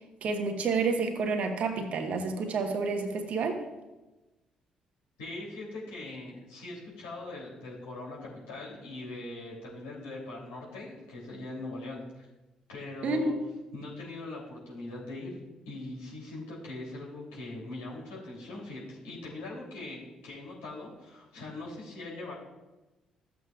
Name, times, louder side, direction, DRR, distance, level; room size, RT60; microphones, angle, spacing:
voice 1, 0.2-3.6 13.0-13.4, right 4 dB, 55° right, 6 dB, 1.1 m, -29 dB
voice 2, 5.2-12.3 12.7-13.3 13.7-15.4 15.6-22.3, left 2 dB, 75° left, -4 dB, 2.9 m, -41 dB
13.5 x 7.9 x 2.4 m, 1.1 s
figure-of-eight pair, 45°, 3 cm